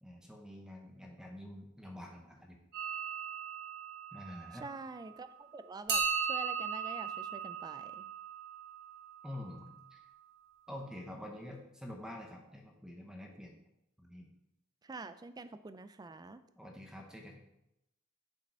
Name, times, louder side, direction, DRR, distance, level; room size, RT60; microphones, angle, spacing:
voice 1, 0.0-2.6 4.1-4.7 9.2-10.0 10.7-13.6 14.0-14.3 16.6-17.4, left 1 dB, 5° right, 1 dB, 0.8 m, -47 dB
sound 1, 2.7-5.2 5.9-9.8, right 6 dB, 50° right, 1.7 m, -38 dB
voice 2, 4.6-8.1 14.8-16.4, right 3 dB, 20° right, 12 dB, 0.3 m, -47 dB
7.4 x 5.0 x 4.4 m, 0.85 s
head